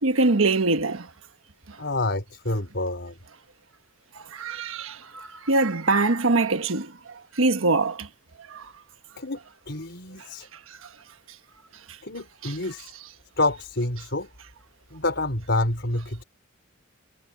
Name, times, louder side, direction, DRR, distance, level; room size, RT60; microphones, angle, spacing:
voice 1, 0.0-1.1 4.3-6.9 7.4-8.1 8.5-8.6 12.4-12.5, right 3 dB, 80° right, 1.3 m, -23 dB
voice 2, 1.8-3.1 9.2-9.4 9.7-10.5 12.0-12.9 13.4-14.3 14.9-16.2, left 2 dB, 60° left, 5.0 m, -28 dB
head